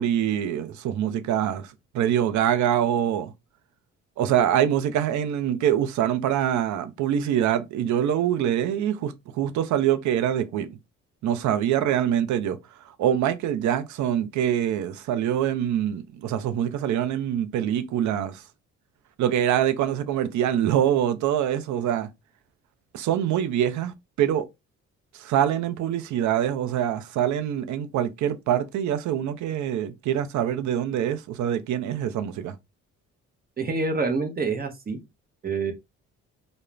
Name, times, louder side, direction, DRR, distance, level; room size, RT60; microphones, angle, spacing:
voice 1, 0.0-3.3 4.2-10.8 11.2-12.6 13.0-18.4 19.2-22.1 22.9-24.5 25.1-32.6, right 10 dB, 70° right, 0.5 m, -24 dB
voice 2, 33.6-35.0 35.4-35.7, right 4 dB, 30° right, 0.7 m, -26 dB
2.4 x 2.1 x 3.0 m
cardioid pair, 90°, 30 cm